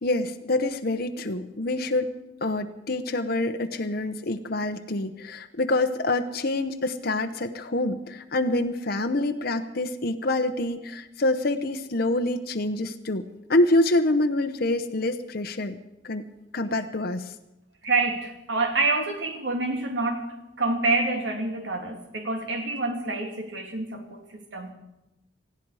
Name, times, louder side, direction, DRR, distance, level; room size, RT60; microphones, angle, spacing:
voice 1, 0.0-2.1 2.4-13.2 13.5-15.8 16.0-16.2 16.5-17.3, left 2 dB, 60° left, 6 dB, 0.9 m, -26 dB
voice 2, 17.8-24.7, right 3 dB, 85° right, 4 dB, 2.6 m, -27 dB
19.0 x 15.5 x 4.9 m, 0.93 s
head